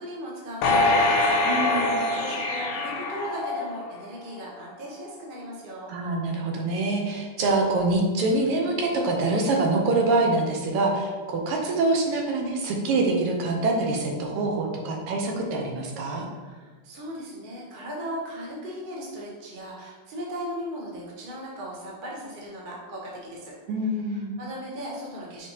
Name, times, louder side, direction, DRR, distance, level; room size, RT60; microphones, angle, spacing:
voice 1, 0.0-1.4 1.7-5.9 16.4-23.5 24.0-25.5, equal, 55° right, -3 dB, 0.5 m, -37 dB
sound 1, 0.6-4.1 4.5-4.6, left 2 dB, 80° left, 1.5 m, -24 dB
voice 2, 1.5-2.0 5.9-16.3 23.7-24.4, right 2 dB, 85° right, 1 dB, 1.7 m, -25 dB
5.1 x 3.4 x 2.8 m, 1.4 s
omnidirectional pair, 2.4 m